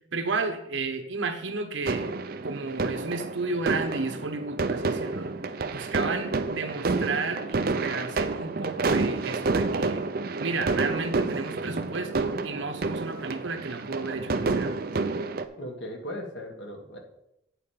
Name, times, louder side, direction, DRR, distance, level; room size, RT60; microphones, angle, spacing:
voice 1, 0.1-2.1 2.4-5.3 5.7-10.0 10.4-14.7, right 3 dB, 65° right, 6 dB, 1.1 m, -32 dB
sound 1, 1.9-15.4, right 3 dB, 45° right, 0.5 m, -29 dB
voice 2, 15.6-17.0, equal, 60° left, 2 dB, 1.7 m, -37 dB
8.5 x 4.9 x 7.5 m, 0.83 s
head